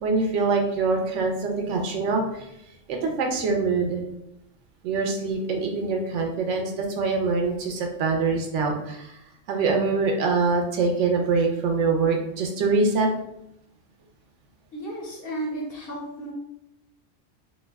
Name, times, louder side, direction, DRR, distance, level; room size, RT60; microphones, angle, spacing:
voice 1, 0.0-2.5 2.9-4.0 4.8-9.2 9.5-13.1, right 4 dB, 75° right, 2 dB, 0.9 m, -24 dB
voice 2, 14.7-16.3, right 1 dB, 60° left, 0 dB, 0.7 m, -33 dB
2.6 x 2.1 x 3.3 m, 0.83 s
omnidirectional pair, 1.3 m